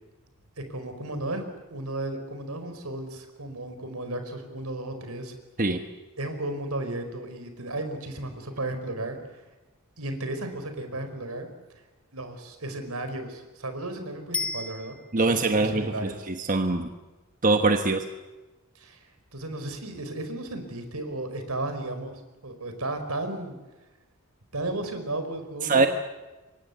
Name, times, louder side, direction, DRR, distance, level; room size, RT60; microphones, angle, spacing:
voice 1, 0.7-1.4 1.7-5.3 6.2-9.2 10.0-11.5 12.1-15.0 15.3-16.2 18.7-23.5 24.5-25.9, right 2 dB, 80° right, 8 dB, 4.7 m, -34 dB
Bicycle bell, 14.3-15.5 24.5-24.6, left 4 dB, 5° left, 1.2 m, -34 dB
voice 2, 15.1-16.9 17.4-18.1 25.6-25.9, right 3 dB, 35° right, 6 dB, 1.2 m, -23 dB
27.0 x 24.0 x 8.2 m, 1.1 s
head